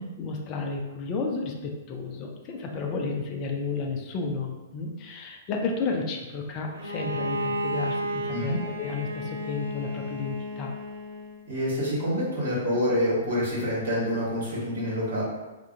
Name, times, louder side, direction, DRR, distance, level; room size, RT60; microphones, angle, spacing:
voice 1, 0.2-10.7, left 4 dB, 35° left, 2 dB, 0.4 m, -32 dB
Bowed string instrument, 6.7-11.4, equal, 75° right, 0.4 m, -33 dB
voice 2, 11.5-15.2, equal, 60° right, -6 dB, 1.1 m, -27 dB
2.3 x 2.1 x 2.7 m, 1.1 s
figure-of-eight pair, 110°, 0 cm